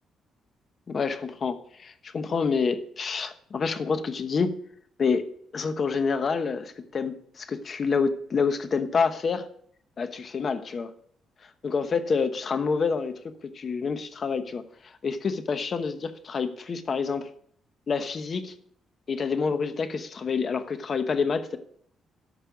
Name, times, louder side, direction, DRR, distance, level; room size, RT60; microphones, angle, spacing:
voice 1, 0.9-4.6 5.0-5.3 5.5-9.5 10.0-10.9 11.6-13.2 13.5-17.3 17.9-18.5 19.1-21.6, left 5 dB, 45° left, 10 dB, 1.0 m, -27 dB
13.0 x 5.5 x 5.2 m, 0.62 s
cardioid pair, 90°, 0 cm